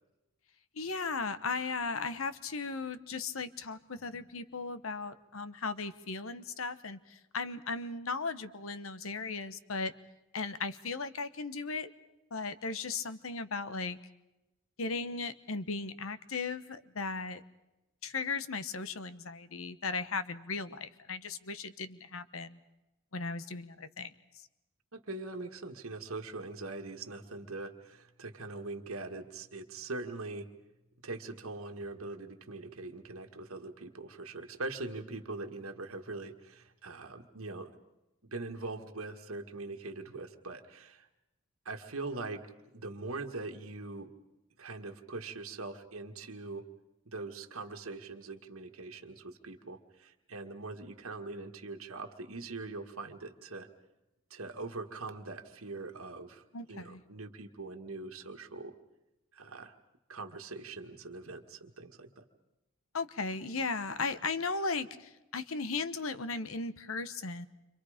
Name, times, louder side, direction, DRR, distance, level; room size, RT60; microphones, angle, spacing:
voice 1, 0.7-9.9 10.3-11.9 12.3-14.0 14.8-17.4 18.0-22.6 23.1-24.1 56.5-57.0 62.9-67.5, left 4 dB, 70° left, 13 dB, 1.1 m, -36 dB
voice 2, 24.9-30.5 31.0-37.7 38.2-41.1 41.7-44.1 44.6-46.7 47.1-53.7 54.3-56.4 56.7-58.7 59.3-59.7 60.1-62.2, right 3 dB, 80° right, 4 dB, 1.8 m, -42 dB
29.5 x 26.0 x 5.1 m, 0.97 s
head